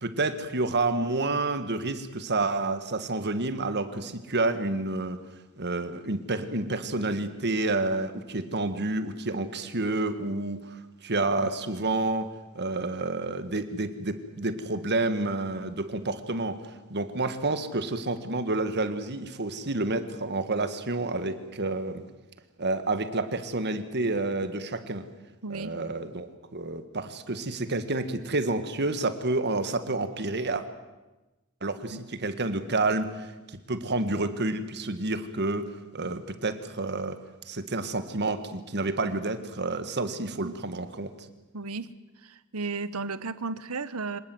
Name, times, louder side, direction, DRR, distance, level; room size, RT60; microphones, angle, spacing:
voice 1, 0.0-5.2 5.6-16.6 16.9-22.0 22.6-25.1 25.5-30.6 31.6-33.3 33.7-37.2 37.5-41.1, right 2 dB, 50° right, 10 dB, 1.7 m, -29 dB
voice 2, 25.4-25.8 40.4-40.5 41.5-41.9 42.5-44.2, right 3 dB, 75° right, 14 dB, 1.1 m, -33 dB
25.5 x 19.0 x 7.9 m, 1.1 s
head